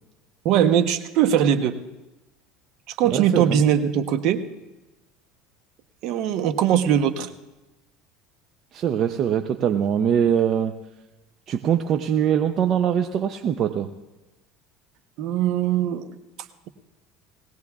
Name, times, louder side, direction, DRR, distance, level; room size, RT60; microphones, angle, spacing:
voice 1, 0.4-1.7 2.9-4.4 6.0-7.3 15.2-16.1, right 9 dB, 60° right, 9 dB, 0.9 m, -21 dB
voice 2, 3.0-3.6 8.7-10.7 11.5-13.9, right 8 dB, 45° right, 6 dB, 0.6 m, -22 dB
21.0 x 17.0 x 2.4 m, 1.1 s
supercardioid pair, 125°, 0 cm